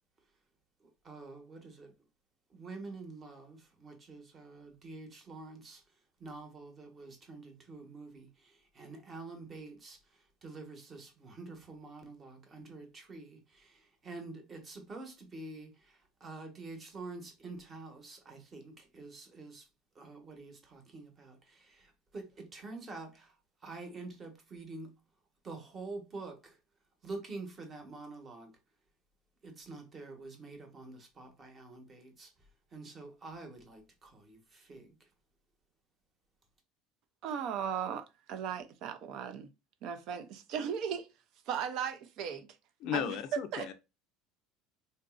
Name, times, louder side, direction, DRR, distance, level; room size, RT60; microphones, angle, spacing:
voice 1, 0.8-1.9 2.5-5.8 6.2-10.0 10.4-19.6 19.9-23.3 23.6-24.9 25.4-26.6 27.0-28.5 29.4-32.3 32.7-34.9, right 3 dB, 25° right, 1.0 m, -47 dB
voice 2, 37.2-39.5 39.8-41.1 41.5-42.5 42.9-43.2 43.5-43.7, right 8 dB, 55° right, 0.5 m, -37 dB
voice 3, 42.8-43.7, left 10 dB, 55° left, 0.4 m, -35 dB
3.9 x 2.5 x 2.3 m
cardioid pair, 140°, 0 cm